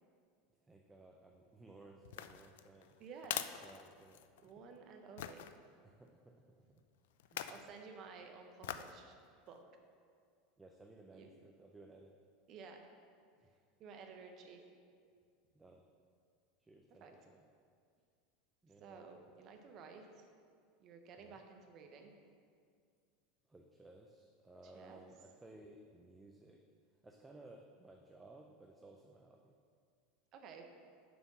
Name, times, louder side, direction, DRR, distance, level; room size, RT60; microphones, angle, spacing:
voice 1, 0.6-3.0 3.6-4.2 5.8-6.8 7.3-7.6 10.6-12.2 13.4-13.6 15.5-15.8 16.6-17.4 18.6-19.1 21.2-21.4 23.5-26.6 27.0-29.5, right 2 dB, 10° right, 2 dB, 0.3 m, -59 dB
sound 1, 2.0-4.5 5.2-5.5 7.2-7.7 8.6-9.0 9.5-9.6, left 11 dB, 80° left, 0.3 m, -44 dB
voice 2, 3.0-3.5 4.4-5.4 7.5-9.2 9.5-9.6 11.1-11.3 12.5-12.8 13.8-14.6 17.0-17.1 18.8-20.3 20.8-22.1 24.6-25.0 30.3-30.6, right 5 dB, 30° right, 4 dB, 0.7 m, -53 dB
6.7 x 4.5 x 6.0 m, 2.2 s
supercardioid pair, 170°, 0 cm